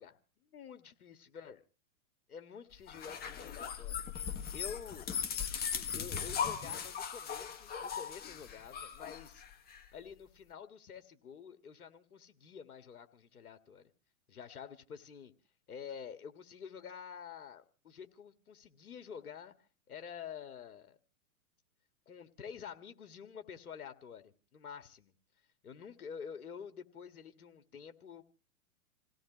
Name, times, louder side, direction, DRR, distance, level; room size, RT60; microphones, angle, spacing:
voice 1, 0.0-1.6 2.3-3.9 4.5-5.1 5.7-9.4 9.9-13.8 14.3-15.3 15.7-19.5 19.9-21.0 22.1-25.1 25.6-28.2, left 7 dB, 80° left, 2.0 m, -48 dB
sound 1, 2.9-9.8, left 7 dB, 20° left, 1.6 m, -39 dB
28.0 x 17.0 x 3.0 m
hypercardioid pair, 120°, 43 cm